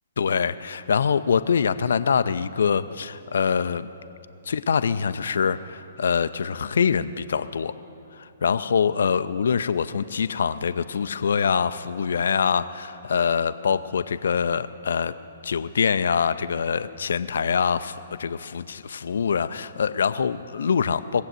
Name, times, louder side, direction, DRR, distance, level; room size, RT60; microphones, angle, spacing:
voice 1, 0.2-3.9 4.5-7.7 8.2-15.1 15.4-21.2, left 6 dB, 60° left, 12 dB, 0.4 m, -24 dB
19.5 x 7.7 x 7.7 m, 2.8 s
figure-of-eight pair, 120°, 0 cm